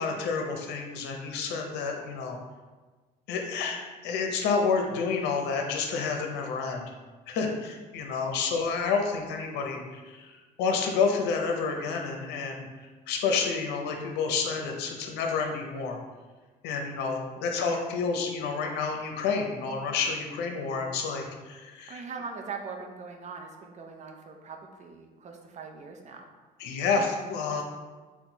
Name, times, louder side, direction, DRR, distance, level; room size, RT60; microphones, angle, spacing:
voice 1, 0.0-2.4 3.3-6.9 7.3-10.3 10.6-12.6 13.1-16.0 16.6-22.0 26.6-27.6, left 5 dB, 85° left, 2 dB, 0.6 m, -29 dB
voice 2, 21.9-26.3, right 5 dB, 45° right, 3 dB, 0.6 m, -41 dB
4.3 x 2.2 x 3.9 m, 1.3 s
cardioid pair, 110°, 17 cm